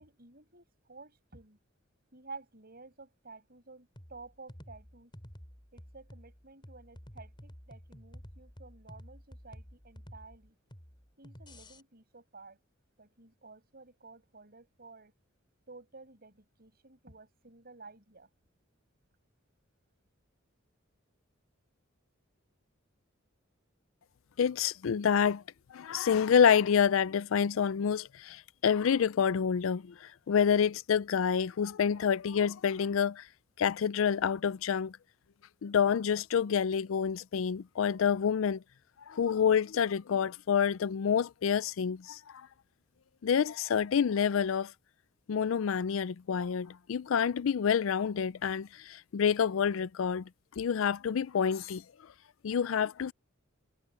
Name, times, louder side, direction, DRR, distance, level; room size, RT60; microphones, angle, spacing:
voice 1, 0.0-1.6 2.1-5.1 5.7-10.5 11.2-12.6 13.0-15.2 15.7-18.3, right 3 dB, 50° right, 6.5 m, -52 dB
sound 1, 4.0-11.8, equal, 25° left, 4.4 m, -51 dB
voice 2, 24.4-25.4 25.7-33.3 33.6-35.0 35.6-38.6 39.1-42.5 43.2-44.7 45.3-50.3 50.6-51.8 52.4-53.1, left 7 dB, 80° left, 0.4 m, -28 dB
head